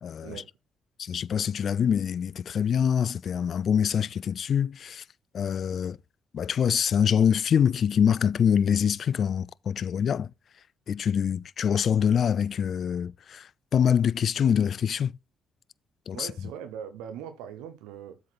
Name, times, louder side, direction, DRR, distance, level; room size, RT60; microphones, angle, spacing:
voice 1, 0.0-0.4 1.0-5.0 5.3-6.0 6.3-10.3 10.9-15.1 16.1-16.3, left 8 dB, 60° left, 0.3 m, -25 dB
voice 2, 16.1-18.2, right 8 dB, 90° right, 0.7 m, -40 dB
7.7 x 5.1 x 3.9 m
supercardioid pair, 65°, 0 cm